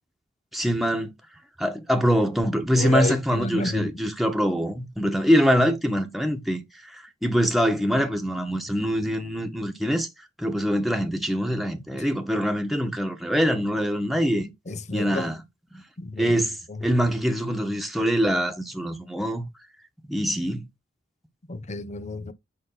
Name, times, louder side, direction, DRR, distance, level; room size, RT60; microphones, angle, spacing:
voice 1, 0.5-1.1 1.6-10.1 10.4-14.5 14.9-15.4 15.7-15.8 16.2-19.4 20.1-20.7, equal, ahead, 1.4 m, -24 dB
voice 2, 2.7-3.9 11.9-12.1 14.7-15.3 16.0-16.9 21.5-22.3, left 2 dB, 40° left, 0.8 m, -30 dB
8.6 x 5.7 x 4.0 m
head